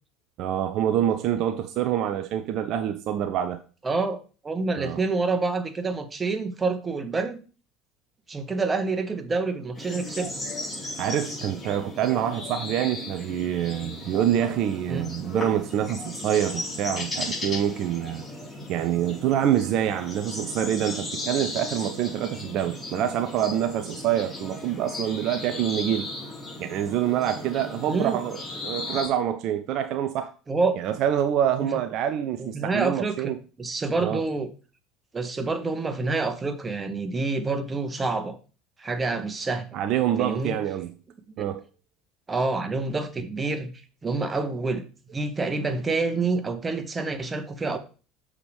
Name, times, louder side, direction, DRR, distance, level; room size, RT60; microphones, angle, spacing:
voice 1, 0.4-3.6 4.8-5.0 11.0-18.2 18.7-26.1 26.6-30.3 30.7-33.4 34.0-34.2 39.7-41.0 41.4-41.6, right 10 dB, 50° right, 0.4 m, -26 dB
voice 2, 3.8-4.2 4.4-7.4 8.3-10.3 14.9-15.1 27.9-28.2 30.5-30.7 31.6-31.7 32.4-34.5 35.1-38.4 38.8-39.7 40.2-40.6 41.4-41.5 42.3-43.7 44.0-44.8 45.1-47.8, right 3 dB, 20° right, 1.1 m, -27 dB
sound 1, 9.7-29.1, left 2 dB, 25° left, 3.5 m, -36 dB
6.8 x 4.8 x 3.4 m
figure-of-eight pair, 65°, 0 cm